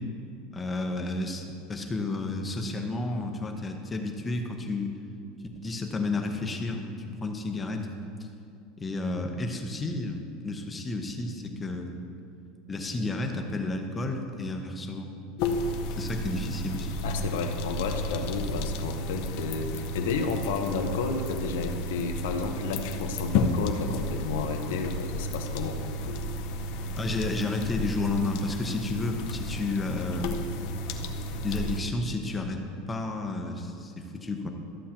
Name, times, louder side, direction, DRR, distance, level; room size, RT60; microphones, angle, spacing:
voice 1, 0.5-5.0 5.5-7.9 8.2-8.3 8.8-12.0 12.7-15.1 15.8-16.9 27.0-30.3 31.4-34.5, left 2 dB, 15° left, 4 dB, 0.7 m, -31 dB
sound 1, 15.4-31.8, left 1 dB, 55° left, 0.6 m, -32 dB
voice 2, 17.0-25.8, left 4 dB, 85° left, 5 dB, 0.8 m, -31 dB
13.5 x 7.3 x 2.9 m, 2.5 s
supercardioid pair, 150°, 0 cm